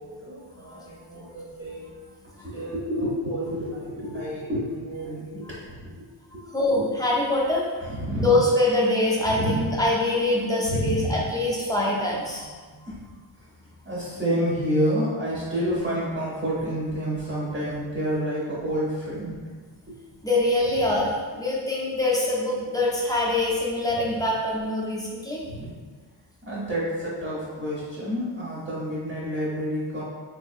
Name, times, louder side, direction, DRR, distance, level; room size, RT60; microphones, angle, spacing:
voice 1, 0.0-1.9 2.4-5.9 6.7-6.8 7.8-8.4 9.2-9.7 10.6-11.2 12.9-13.0 13.8-19.4 19.9-20.0 23.9-24.2 25.4-25.8 26.4-30.0, equal, 25° right, -8 dB, 0.7 m, -29 dB
voice 2, 6.5-7.6 8.2-12.5 20.2-21.1 21.4-25.4, left 2 dB, 10° left, -5 dB, 0.4 m, -24 dB
3.8 x 2.7 x 2.4 m, 1.4 s
wide cardioid pair, 170°, 48 cm